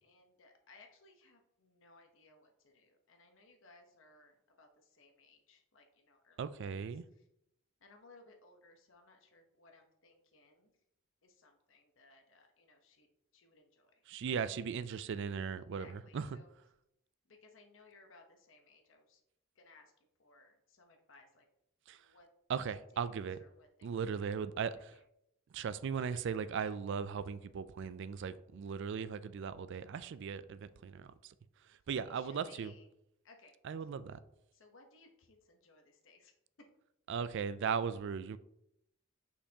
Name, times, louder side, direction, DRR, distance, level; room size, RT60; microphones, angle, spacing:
voice 1, 0.0-6.9 7.8-10.7 11.2-13.1 13.3-14.0 15.8-16.5 17.2-19.2 19.5-21.5 21.9-22.3 23.1-23.9 24.7-25.0 25.9-26.2 26.6-26.7 32.1-32.9 33.2-33.5 34.5-36.3, left 3 dB, 65° left, 1.0 m, -63 dB
voice 2, 6.4-7.0 14.1-16.3 21.9-22.1 22.5-23.4 23.8-25.0 25.5-31.3 31.6-32.7 33.6-34.2 37.1-38.4, right 6 dB, 60° right, 0.3 m, -38 dB
6.5 x 5.6 x 2.8 m
head